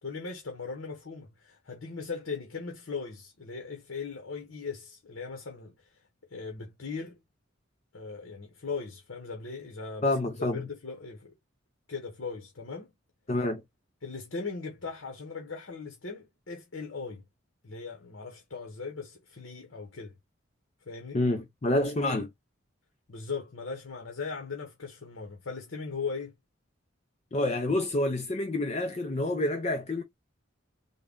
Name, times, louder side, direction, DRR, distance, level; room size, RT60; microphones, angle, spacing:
voice 1, 0.0-5.7 6.3-7.2 7.9-10.1 10.4-11.3 11.9-12.9 14.0-17.2 17.6-20.1 20.9-21.2 23.1-26.3, left 4 dB, 70° left, 0.9 m, -39 dB
voice 2, 10.0-10.7 13.3-13.6 21.1-22.3 27.3-30.0, left 1 dB, 30° left, 0.5 m, -28 dB
3.6 x 2.2 x 3.6 m
head